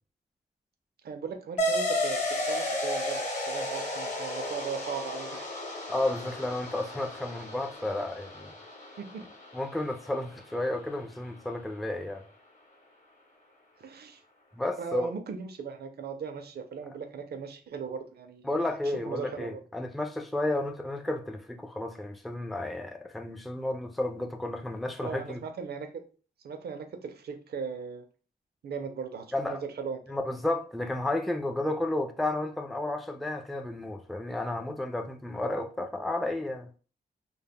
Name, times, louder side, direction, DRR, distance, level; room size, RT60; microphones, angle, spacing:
voice 1, 1.0-5.5 9.0-9.3 13.8-14.2 14.8-18.6 19.1-19.6 25.0-26.0 26.4-28.1 28.6-30.0, right 6 dB, 65° right, 0.5 m, -38 dB
sound 1, 1.6-10.6, left 1 dB, 45° left, 0.8 m, -33 dB
voice 2, 5.9-8.5 9.5-12.2 14.5-15.1 18.4-25.4 29.3-29.6 30.1-36.7, left 1 dB, ahead, 0.3 m, -32 dB
2.2 x 2.0 x 3.4 m
cardioid pair, 80°, 18 cm